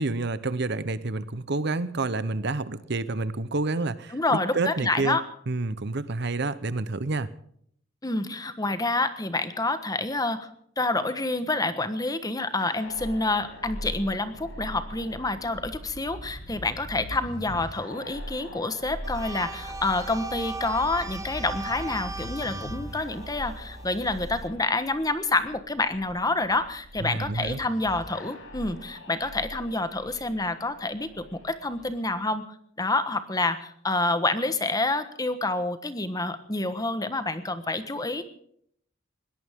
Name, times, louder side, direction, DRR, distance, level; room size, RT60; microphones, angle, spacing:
voice 1, 0.0-5.2 5.5-7.3 27.0-27.6, right 3 dB, 55° right, 15 dB, 0.9 m, -29 dB
voice 2, 4.1-5.2 8.0-10.5 10.8-32.4 32.8-38.2, left 2 dB, 20° left, 11 dB, 1.3 m, -28 dB
sound 1, 12.6-32.0, equal, 75° left, 6.1 m, -42 dB
sound 2, 19.0-24.5, right 3 dB, 15° right, 1.2 m, -38 dB
21.5 x 17.5 x 3.7 m, 0.65 s
head